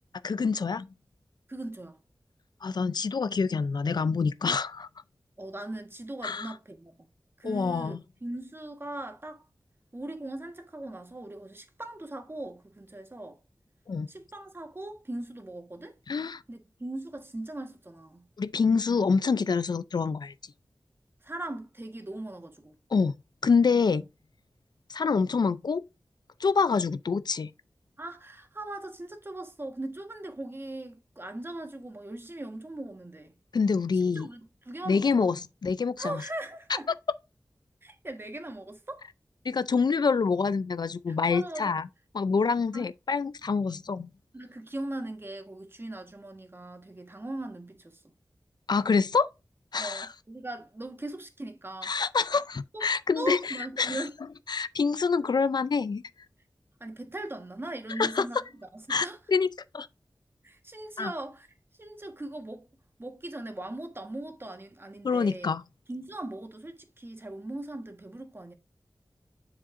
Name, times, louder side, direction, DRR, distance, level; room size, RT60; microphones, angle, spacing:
voice 1, 0.2-0.9 2.6-4.9 6.2-6.5 7.4-8.0 13.9-14.1 16.1-16.4 18.4-20.3 22.9-23.1 23.4-24.0 24.9-25.8 26.4-27.5 33.5-34.3 34.9-35.4 35.6-36.2 39.4-41.9 42.1-44.1 48.7-49.3 49.7-50.1 51.8-54.1 54.5-56.0 58.0-58.3 58.9-59.5 59.7-59.9 61.0-61.1 65.0-65.6, left 5 dB, 70° left, 0.4 m, -26 dB
voice 2, 1.5-2.0 5.4-7.1 7.4-9.5 9.9-13.4 14.1-16.0 16.5-18.3 21.2-22.7 28.0-33.3 34.1-35.4 36.0-36.9 37.8-39.1 41.1-41.7 42.7-42.9 44.3-48.0 49.8-51.9 52.7-52.8 53.2-54.1 56.8-58.4 58.7-59.2 60.4-61.5 61.8-62.7 63.0-65.5 65.9-68.5, right 1 dB, 30° right, 1.4 m, -39 dB
7.4 x 7.1 x 2.5 m
wide cardioid pair, 75°, 7 cm